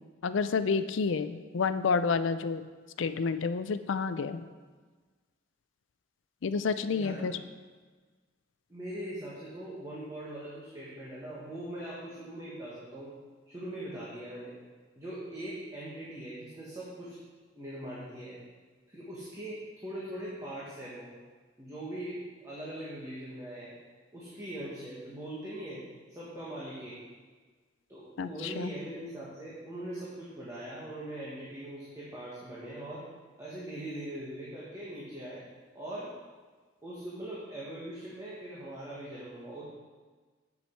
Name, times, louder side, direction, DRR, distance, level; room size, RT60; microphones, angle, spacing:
voice 1, 0.2-2.6 3.0-4.4 6.4-7.4 28.2-28.7, left 5 dB, 75° left, 12 dB, 0.4 m, -29 dB
voice 2, 6.9-7.4 8.7-13.2 13.5-14.5 15.0-17.2 17.5-18.4 18.9-21.1 21.6-23.7 24.1-25.8 26.1-27.0 27.9-33.0 33.4-35.4 35.7-36.2 36.8-39.6, right 1 dB, 20° right, -8 dB, 1.5 m, -41 dB
7.7 x 7.1 x 4.5 m, 1.4 s
head